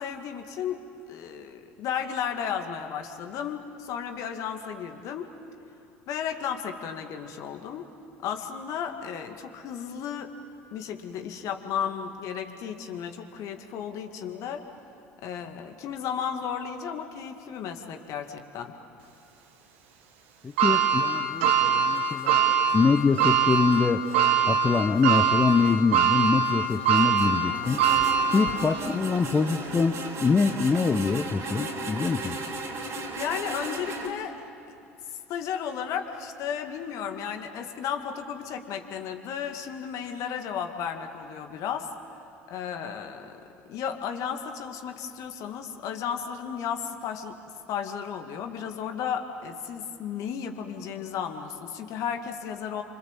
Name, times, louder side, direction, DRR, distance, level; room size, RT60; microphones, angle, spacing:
voice 1, 0.0-5.3 6.1-7.9 8.2-10.4 10.7-14.7 15.2-18.8 33.2-34.4 35.1-41.9 42.5-43.4 43.7-47.4 47.7-52.8, left 8 dB, 55° left, 5 dB, 2.3 m, -34 dB
voice 2, 20.4-22.4 22.7-24.0 24.5-27.8 28.3-32.4, left 4 dB, 25° left, 5 dB, 1.1 m, -24 dB
sound 1, 20.6-28.9 29.4-29.5 30.7-30.8, right 6 dB, 70° right, 2.2 m, -23 dB
sound 2, 21.5-34.1, right 2 dB, 45° right, 4.0 m, -37 dB
29.0 x 25.5 x 7.5 m, 2.7 s
hypercardioid pair, 70°, 7 cm